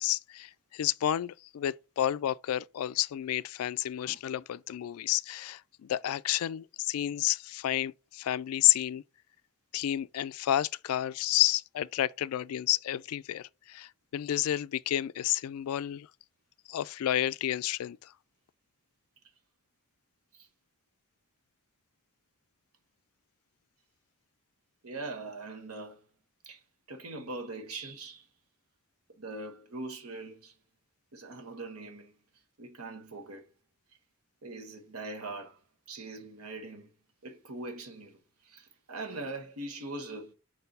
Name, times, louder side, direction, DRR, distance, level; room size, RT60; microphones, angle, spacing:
voice 1, 0.0-9.0 9.7-16.1 16.7-18.1, left 12 dB, 80° left, 0.3 m, -30 dB
voice 2, 24.8-26.0 26.4-26.6 26.9-28.3 29.1-30.5 31.1-32.1 32.6-33.5 34.4-35.6 35.9-36.9 37.2-38.2 38.4-40.3, right 2 dB, 85° right, 1.4 m, -41 dB
4.8 x 4.4 x 5.3 m
head